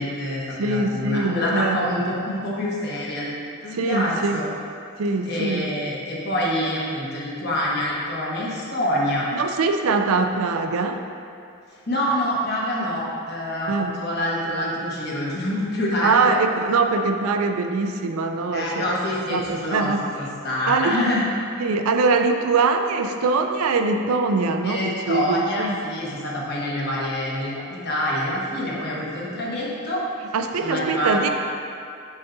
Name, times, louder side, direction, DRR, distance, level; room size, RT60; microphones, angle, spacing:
voice 1, 0.0-3.3 3.6-4.5 5.2-9.3 11.9-16.4 18.5-19.9 20.2-21.2 24.6-30.0 30.6-31.3, left 1 dB, 45° left, -5 dB, 1.2 m, -26 dB
voice 2, 0.6-1.8 3.7-4.4 5.0-5.7 9.3-11.0 13.7-13.9 16.0-19.0 19.3-20.0 20.7-21.0 21.6-25.8 30.3-31.3, right 4 dB, 75° right, 6 dB, 0.4 m, -22 dB
7.1 x 5.7 x 2.6 m, 2.5 s
head